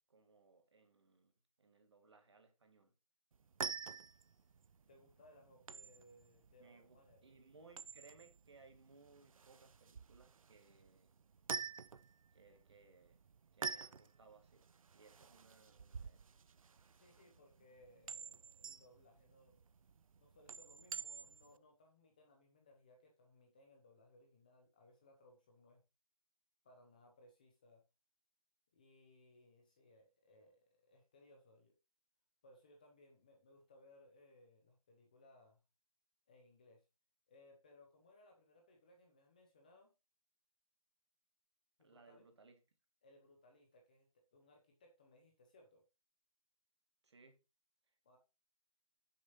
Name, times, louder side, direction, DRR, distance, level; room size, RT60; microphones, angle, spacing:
voice 1, 0.0-1.3 1.6-2.9 6.6-11.1 12.3-13.2 13.5-14.7 14.9-16.2 41.8-42.6 47.0-47.4, right 4 dB, 50° right, 1.7 m, -64 dB
sound 1, 3.3-21.6, right 5 dB, 70° right, 0.5 m, -49 dB
voice 2, 4.9-7.3 17.0-19.6 20.2-25.8 26.6-27.8 28.7-31.8 32.4-35.6 36.3-36.8 37.3-39.9 41.8-42.2 43.0-45.8 48.0-48.2, left 1 dB, 15° left, 0.7 m, -66 dB
6.6 x 4.4 x 5.5 m
hypercardioid pair, 170°, 18 cm